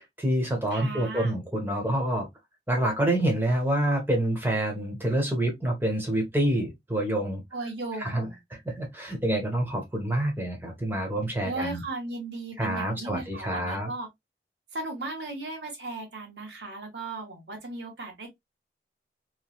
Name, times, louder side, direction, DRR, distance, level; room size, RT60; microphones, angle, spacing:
voice 1, 0.2-2.3 2.7-7.4 8.0-8.3 8.6-11.8 12.6-13.9, right 1 dB, 10° right, 1.0 m, -27 dB
voice 2, 0.7-1.3 7.5-8.4 11.4-14.1 14.7-18.3, right 2 dB, 85° right, 1.2 m, -36 dB
3.1 x 2.4 x 2.3 m
head